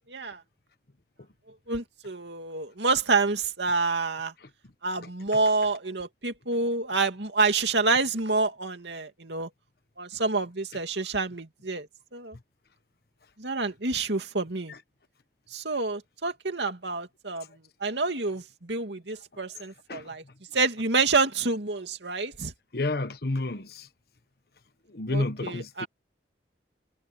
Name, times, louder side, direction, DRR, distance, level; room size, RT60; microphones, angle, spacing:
voice 1, 0.1-0.4 1.7-4.3 4.8-9.5 10.0-11.9 12.1-12.4 13.4-14.7 15.5-17.5 17.8-20.2 20.5-22.5 25.1-25.9, right 3 dB, 75° right, 2.6 m, -28 dB
voice 2, 22.7-23.9 24.9-25.9, left 2 dB, 60° left, 1.3 m, -30 dB
head